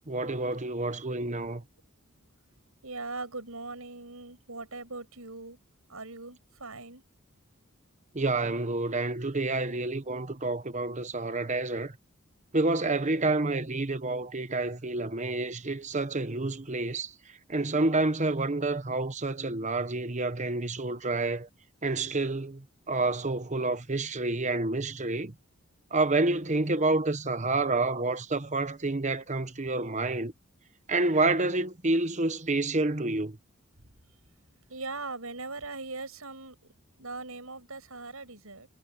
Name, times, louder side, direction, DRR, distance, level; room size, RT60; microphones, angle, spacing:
voice 1, 0.1-1.6 8.1-11.9 12.5-17.1 17.5-21.5 21.8-25.3 25.9-30.3 30.9-33.4, right 2 dB, 35° right, 1.1 m, -28 dB
voice 2, 2.8-5.6 5.9-7.0 34.7-36.6 37.0-38.7, right 3 dB, 90° right, 7.6 m, -40 dB
head